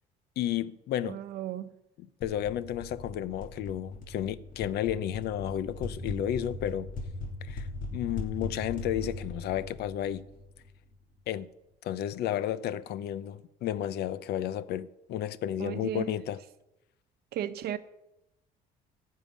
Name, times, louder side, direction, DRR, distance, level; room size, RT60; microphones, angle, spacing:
voice 1, 0.4-1.2 2.0-6.9 7.4-10.2 11.3-11.5 11.8-16.4, left 11 dB, 75° left, 0.7 m, -32 dB
voice 2, 1.0-1.7 15.6-16.1 17.3-17.8, right 11 dB, 70° right, 0.8 m, -35 dB
sound 1, 2.2-10.9, left 2 dB, 55° left, 2.5 m, -39 dB
14.5 x 5.7 x 9.5 m
cardioid pair, 110°, 17 cm